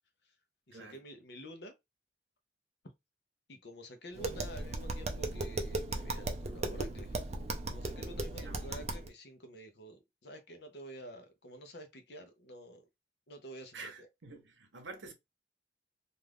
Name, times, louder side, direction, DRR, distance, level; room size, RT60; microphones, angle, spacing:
voice 1, 0.7-1.7 3.5-7.4 7.7-12.9 13.3-14.1, equal, 65° left, 0.7 m, -49 dB
Tap, 4.1-9.1, right 2 dB, 35° right, 0.5 m, -37 dB
voice 2, 13.7-15.1, right 3 dB, 90° right, 0.8 m, -48 dB
2.5 x 2.4 x 3.3 m
head